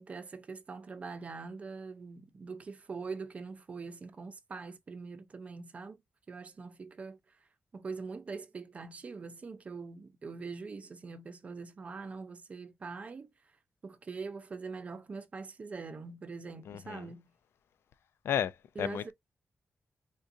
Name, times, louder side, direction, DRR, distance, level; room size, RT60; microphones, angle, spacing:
voice 1, 0.0-6.0 6.3-7.2 7.7-13.3 13.8-17.3 18.8-19.1, right 4 dB, 35° right, 0.6 m, -43 dB
voice 2, 16.7-17.1 18.2-19.1, left 9 dB, 85° left, 0.3 m, -33 dB
3.7 x 2.5 x 2.6 m
wide cardioid pair, 150°, 4 cm